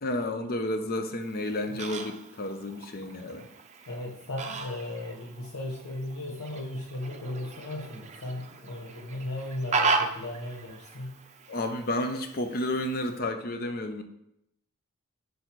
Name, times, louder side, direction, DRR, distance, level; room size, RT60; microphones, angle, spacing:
voice 1, 0.0-3.5 11.5-14.0, left 1 dB, 45° left, 6 dB, 0.6 m, -31 dB
Fowl, 1.2-13.2, right 4 dB, 30° right, 0.5 m, -36 dB
voice 2, 3.9-11.2, left 1 dB, 85° left, -3 dB, 1.0 m, -36 dB
5.0 x 4.1 x 4.5 m, 0.77 s
head